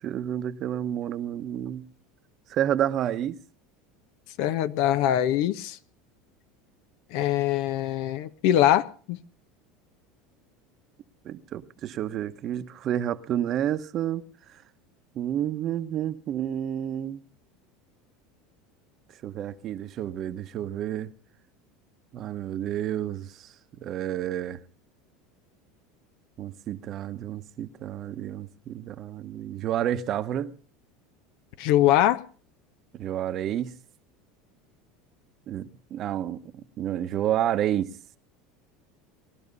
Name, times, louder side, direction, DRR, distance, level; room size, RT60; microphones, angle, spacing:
voice 1, 0.0-1.8 2.5-3.4 11.2-14.2 15.1-17.2 19.2-21.1 22.1-24.6 26.4-30.5 32.9-33.7 35.5-37.9, right 11 dB, 45° right, 1.1 m, -30 dB
voice 2, 4.4-5.8 7.1-9.2 31.6-32.2, left 12 dB, 65° left, 1.1 m, -23 dB
20.0 x 12.0 x 5.5 m
supercardioid pair, 105°, 0 cm